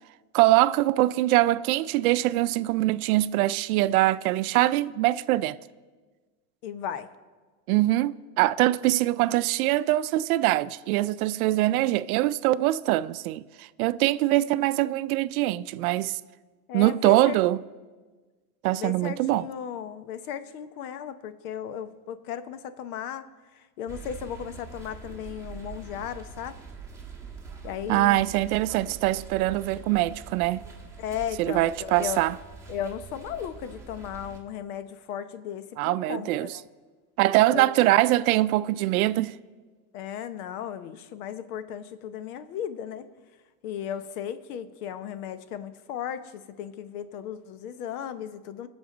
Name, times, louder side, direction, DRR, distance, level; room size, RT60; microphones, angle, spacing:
voice 1, 0.3-5.6 7.7-16.2 16.7-17.6 18.6-19.5 27.9-30.6 31.4-32.3 35.8-36.5 37.2-39.3, right 16 dB, 65° right, 0.5 m, -23 dB
voice 2, 6.6-7.1 16.7-17.4 18.7-23.3 23.5-26.6 27.6-28.2 31.0-32.2 32.7-36.6 37.5-37.7 39.9-43.1 43.6-48.7, left 9 dB, 70° left, 0.9 m, -36 dB
sound 1, 23.9-34.4, right 4 dB, 5° right, 1.3 m, -44 dB
20.5 x 7.1 x 3.9 m
supercardioid pair, 145°, 46 cm